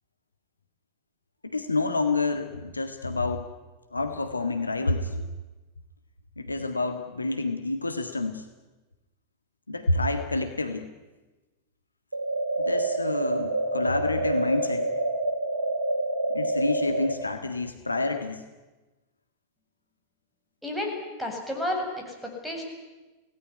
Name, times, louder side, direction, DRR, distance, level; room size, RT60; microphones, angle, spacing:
voice 1, 1.4-3.5 3.9-5.3 6.4-8.4 9.7-10.9 12.6-14.9 16.3-18.4, left 2 dB, 80° left, 6 dB, 1.8 m, -28 dB
sound 1, 12.1-17.1, right 2 dB, 75° right, 4.1 m, -27 dB
voice 2, 20.6-22.6, left 1 dB, ahead, 1 dB, 7.6 m, -32 dB
24.5 x 18.0 x 10.0 m, 1.2 s
figure-of-eight pair, 90°, 0 cm